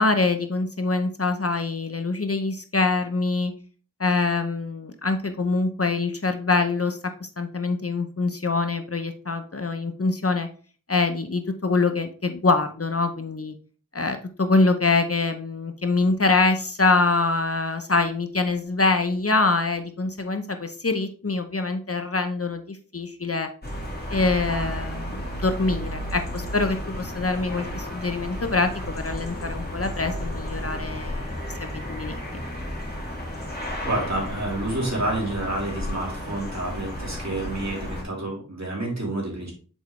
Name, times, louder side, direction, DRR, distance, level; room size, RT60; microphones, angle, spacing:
voice 1, 0.0-3.5 4.0-10.5 10.9-13.5 13.9-23.5 24.1-32.2, left 3 dB, 45° left, 7 dB, 0.7 m, -24 dB
sound 1, 23.6-38.0, equal, 30° left, 2.0 m, -33 dB
voice 2, 33.8-39.5, right 2 dB, 55° right, -3 dB, 3.0 m, -29 dB
7.2 x 4.6 x 3.1 m, 0.40 s
wide cardioid pair, 40°, 33 cm